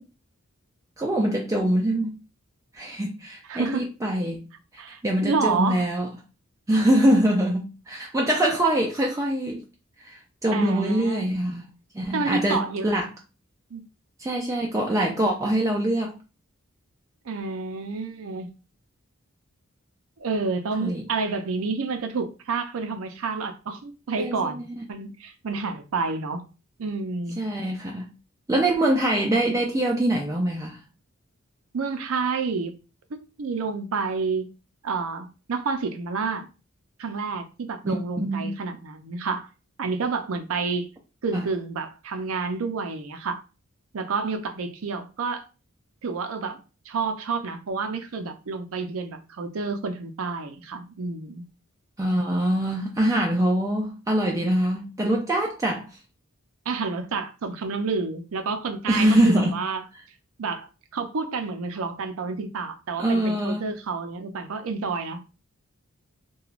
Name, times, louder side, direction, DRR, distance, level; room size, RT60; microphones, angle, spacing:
voice 1, 1.0-2.1 2.7-6.1 6.7-9.6 10.0-11.6 11.9-13.1 14.2-16.2 20.8-21.0 24.2-24.8 27.4-28.1 28.5-30.8 37.8-38.5 41.3-41.4 52.0-56.0 58.9-59.6 63.0-63.7, right 1 dB, 15° right, 0.4 m, -24 dB
voice 2, 3.5-3.9 4.8-5.8 10.5-11.3 12.1-12.9 13.7-13.8 17.3-18.5 20.2-26.5 26.8-27.4 31.7-32.7 33.1-34.5 34.8-36.5 37.0-39.5 39.8-40.9 41.2-43.4 43.9-45.4 46.0-51.4 56.7-59.8 60.4-65.2, right 4 dB, 75° right, 0.5 m, -29 dB
2.9 x 2.3 x 2.4 m
head